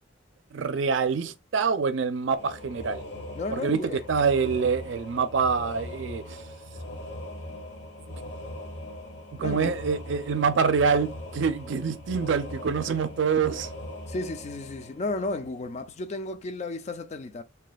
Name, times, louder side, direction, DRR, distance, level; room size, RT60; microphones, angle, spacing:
voice 1, 0.5-3.0 3.5-6.4 8.1-8.2 9.4-13.7, right 5 dB, 80° right, 0.4 m, -26 dB
sound 1, 2.4-15.8, left 1 dB, 65° left, 1.0 m, -40 dB
voice 2, 3.4-4.0 9.4-9.7 14.1-17.4, left 2 dB, 35° left, 0.4 m, -33 dB
2.7 x 2.3 x 4.0 m
head